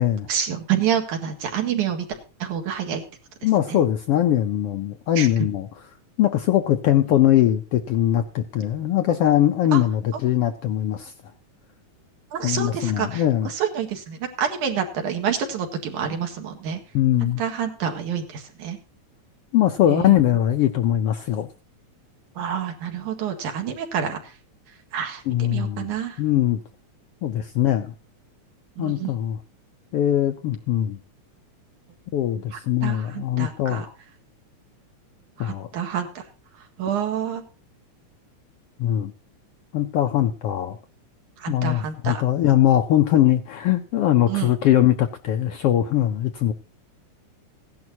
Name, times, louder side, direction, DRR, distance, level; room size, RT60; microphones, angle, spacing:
voice 1, 0.3-3.0 3.4-3.8 5.2-5.3 9.7-9.8 12.3-16.8 17.2-18.8 19.9-20.2 22.4-24.3 24.9-26.2 28.8-29.1 32.8-33.9 35.4-36.2 36.8-37.4 41.4-42.2 44.3-44.5, right 8 dB, 90° right, 4 dB, 3.3 m, -28 dB
voice 2, 3.4-5.7 6.2-11.1 12.4-13.5 16.9-17.4 19.5-21.5 25.3-25.9 26.2-26.6 27.2-27.9 28.8-29.4 29.9-31.0 32.1-33.9 35.4-35.7 38.8-39.1 39.7-40.8 41.5-46.5, left 12 dB, 75° left, 7 dB, 1.4 m, -21 dB
16.5 x 11.0 x 2.8 m, 0.34 s
omnidirectional pair, 3.4 m